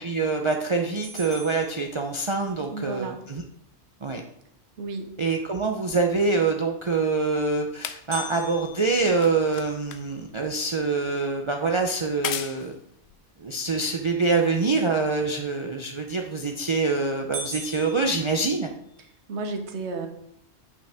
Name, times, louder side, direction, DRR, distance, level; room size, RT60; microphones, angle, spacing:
voice 1, 0.0-3.4 4.0-4.2 5.2-12.7 13.4-18.7, right 3 dB, 40° right, 3 dB, 0.5 m, -25 dB
sound 1, 1.0-2.6 8.1-10.3 10.8-10.9 11.4-11.5 12.1-12.5 16.1-16.5 16.9-17.0 17.3-19.1, right 2 dB, 65° right, 1.7 m, -40 dB
voice 2, 2.7-3.2 4.8-5.1 19.0-20.1, right 3 dB, 80° right, 6 dB, 1.2 m, -33 dB
sound 2, 5.9-14.5 15.4-15.5, left 9 dB, 75° left, 0.8 m, -40 dB
8.5 x 5.5 x 3.4 m, 0.74 s
omnidirectional pair, 1.1 m